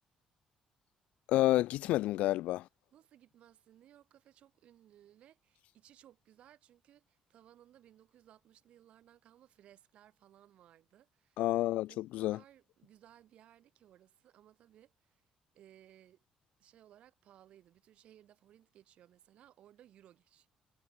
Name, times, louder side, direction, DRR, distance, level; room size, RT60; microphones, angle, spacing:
voice 1, 1.3-2.6 11.4-12.4, left 16 dB, 90° left, 0.4 m, -29 dB
voice 2, 2.9-11.4 11.9-15.2 15.5-16.2 16.6-20.5, right 11 dB, 65° right, 6.7 m, -62 dB
cardioid pair, 140°, 2 cm